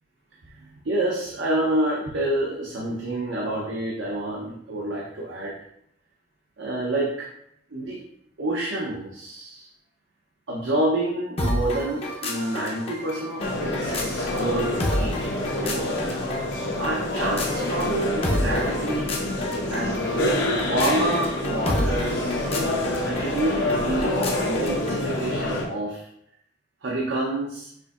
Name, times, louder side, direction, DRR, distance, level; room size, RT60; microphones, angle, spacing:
voice 1, 0.6-5.5 6.6-7.3 7.7-8.0 8.4-9.7 10.5-15.2 15.6-16.4 16.8-19.1 19.7-20.2 20.7-22.6 23.0-26.0 26.8-27.7, right 1 dB, 85° right, -3 dB, 0.7 m, -28 dB
sound 1, 11.4-25.1, left 1 dB, 35° left, 0.6 m, -31 dB
sound 2, 13.4-25.7, left 1 dB, 80° left, 0.8 m, -27 dB
6.0 x 2.7 x 2.4 m, 0.72 s
head